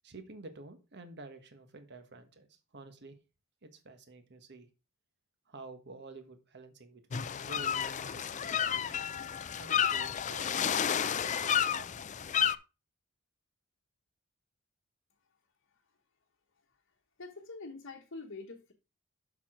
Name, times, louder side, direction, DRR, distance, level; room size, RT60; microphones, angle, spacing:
voice 1, 0.0-3.1 3.6-4.7 5.5-9.1 9.5-11.9, right 3 dB, 50° right, 1.3 m, -50 dB
sound 1, 7.1-12.6, left 8 dB, 35° left, 0.4 m, -31 dB
voice 2, 15.2-16.0 16.5-18.7, left 3 dB, 60° left, 1.2 m, -48 dB
7.2 x 6.0 x 4.8 m
head